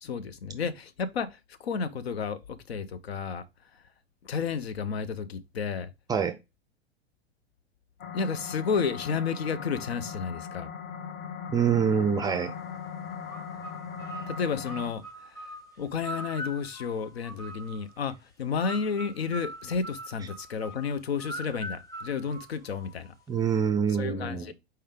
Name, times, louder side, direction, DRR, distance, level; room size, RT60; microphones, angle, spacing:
voice 1, 0.0-3.4 3.7-3.8 4.2-5.9 8.1-10.7 14.3-15.4 15.8-23.1 24.0-24.5, left 5 dB, 70° left, 0.6 m, -32 dB
sound 1, 8.0-14.9, left 7 dB, 40° left, 0.8 m, -39 dB
voice 2, 11.5-12.5 23.3-24.5, right 7 dB, 10° right, 0.4 m, -25 dB
sound 2, 13.2-18.0 18.6-23.1, right 1 dB, 10° left, 0.9 m, -42 dB
4.5 x 3.2 x 3.6 m
figure-of-eight pair, 90°, 32 cm